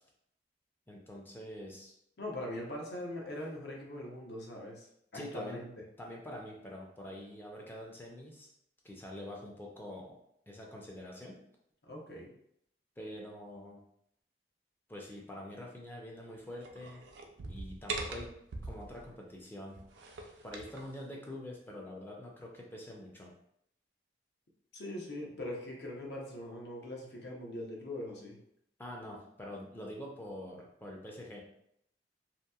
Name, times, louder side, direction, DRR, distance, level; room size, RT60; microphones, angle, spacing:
voice 1, 0.9-1.9 5.1-5.6 6.0-8.5 8.8-10.2 10.5-11.4 13.0-13.8 14.9-17.0 17.5-18.3 18.6-19.8 20.4-23.3 28.8-31.4, left 1 dB, 10° left, -1 dB, 0.4 m, -45 dB
voice 2, 2.2-5.7 11.9-12.3 24.7-28.4, left 1 dB, 65° left, -1 dB, 0.7 m, -41 dB
sound 1, 16.6-19.1 19.7-20.9, right 3 dB, 75° right, 0.4 m, -42 dB
2.8 x 2.6 x 2.3 m, 0.73 s
head